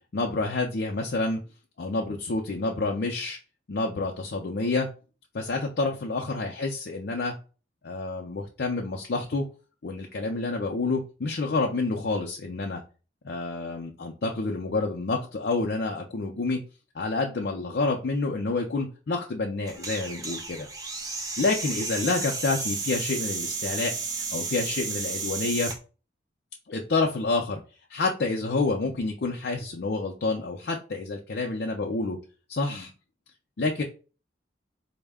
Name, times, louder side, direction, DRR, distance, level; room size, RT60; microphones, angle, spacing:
voice 1, 0.1-1.4 1.8-3.4 3.7-4.9 5.3-7.3 7.8-9.4 9.8-12.8 13.2-16.6 16.9-20.7 21.4-23.9 24.3-25.7 26.7-27.6 27.9-32.2 32.5-32.9 33.6-33.8, left 3 dB, 60° left, 1 dB, 0.5 m, -28 dB
sound 1, 19.7-25.8, right 4 dB, 20° right, 0.5 m, -33 dB
4.1 x 2.1 x 3.5 m, 0.34 s
head